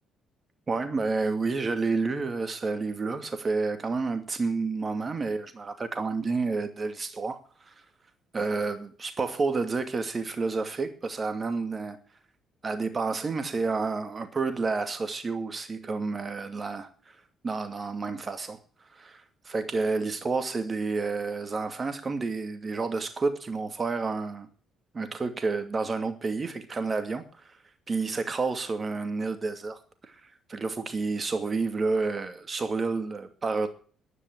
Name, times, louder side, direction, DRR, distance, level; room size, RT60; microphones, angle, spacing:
voice 1, 0.7-7.7 8.3-12.0 12.6-16.9 17.4-18.6 18.9-24.5 24.9-27.2 27.9-30.1 30.5-33.7, right 4 dB, 35° right, 2.5 m, -30 dB
11.0 x 9.8 x 9.1 m
hypercardioid pair, 45°, 0 cm